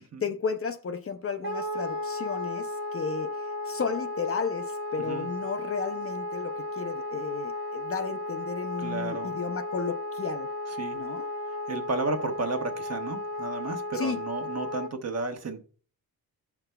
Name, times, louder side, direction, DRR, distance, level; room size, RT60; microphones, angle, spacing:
voice 1, 0.2-10.5 10.9-11.3 13.9-14.2, left 5 dB, 40° left, 0.5 m, -33 dB
Wind instrument woodwind instrument, 1.4-14.9, left 2 dB, 80° right, 1.5 m, -34 dB
voice 2, 5.0-5.3 8.8-9.4 10.7-11.0 11.7-15.6, right 3 dB, 45° right, 1.1 m, -33 dB
16.5 x 5.9 x 2.2 m
wide cardioid pair, 155°, 36 cm